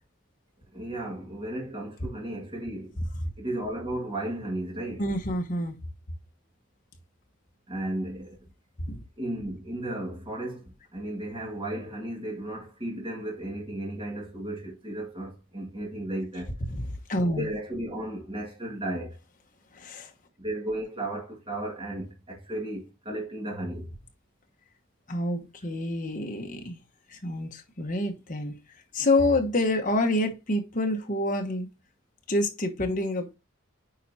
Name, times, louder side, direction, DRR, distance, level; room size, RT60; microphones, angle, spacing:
voice 1, 0.7-2.9 3.4-5.0 7.7-8.4 9.2-16.5 17.4-19.2 20.4-23.9, right 1 dB, 25° right, 2.0 m, -34 dB
voice 2, 5.0-5.8 8.9-9.0 16.7-16.8 17.1-17.5 19.7-20.1 25.1-26.8 27.1-28.6 28.9-31.7 32.3-33.4, left 1 dB, 40° left, 1.1 m, -27 dB
9.1 x 4.4 x 2.7 m
head